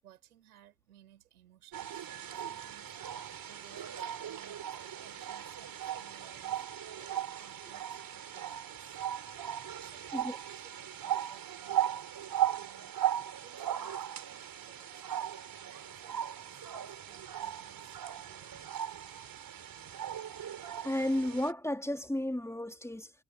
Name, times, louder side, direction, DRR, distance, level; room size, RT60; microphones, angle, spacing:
voice 1, 0.0-2.1 2.4-3.0 3.5-6.6 7.1-9.0 9.8-10.7 11.0-12.1 12.5-12.9 13.4-15.3 15.6-18.8, right 12 dB, 80° right, 7.6 m, -61 dB
sound 1, 1.7-21.5, right 11 dB, 50° right, 4.2 m, -38 dB
voice 2, 20.8-23.1, left 1 dB, 5° left, 3.2 m, -33 dB
figure-of-eight pair, 40°, 44 cm